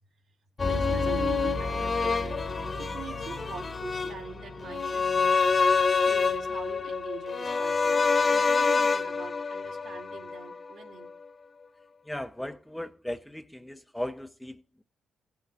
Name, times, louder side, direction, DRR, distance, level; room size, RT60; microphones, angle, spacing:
sound 1, 0.6-10.7 11.0-11.1, left 4 dB, 30° left, 1.0 m, -27 dB
voice 1, 0.6-2.4 2.8-11.1, right 5 dB, 70° right, 2.3 m, -44 dB
voice 2, 12.0-14.8, left 1 dB, 5° left, 0.5 m, -37 dB
15.5 x 6.2 x 4.1 m
cardioid pair, 90°, 0 cm